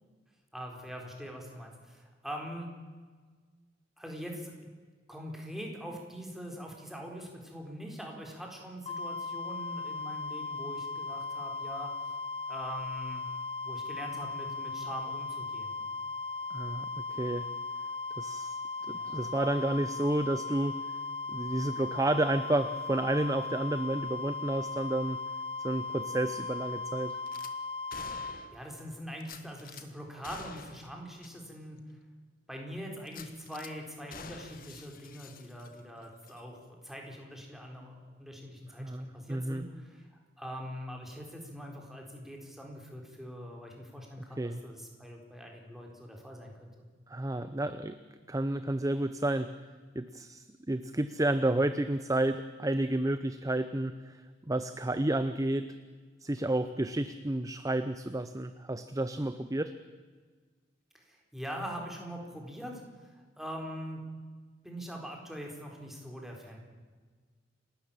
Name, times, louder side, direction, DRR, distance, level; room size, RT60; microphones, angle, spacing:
voice 1, 0.5-2.7 4.0-4.7 5.1-11.9 12.5-13.3 13.6-15.8 18.8-19.3 28.5-32.0 32.5-40.1 40.4-46.7 60.9-64.0 64.6-66.6, equal, ahead, 0 dB, 4.3 m, -43 dB
sound 1, 8.9-28.4, left 3 dB, 35° left, 3.9 m, -37 dB
voice 2, 16.5-17.5 18.2-18.6 18.9-20.8 21.3-25.2 25.6-27.2 38.8-39.6 44.4-44.6 47.1-48.0 48.3-49.5 49.9-54.2 54.5-55.7 56.2-59.7, right 1 dB, 20° right, 11 dB, 0.7 m, -31 dB
Gunshot gunfire / Glass, 27.3-27.5 27.9-28.7 29.2-29.9 30.2-30.9 31.2-31.3 31.8-31.9 33.1-33.7 34.1-35.9 36.2-36.4, left 5 dB, 50° left, 1.4 m, -48 dB
29.0 x 13.0 x 9.0 m, 1.5 s
head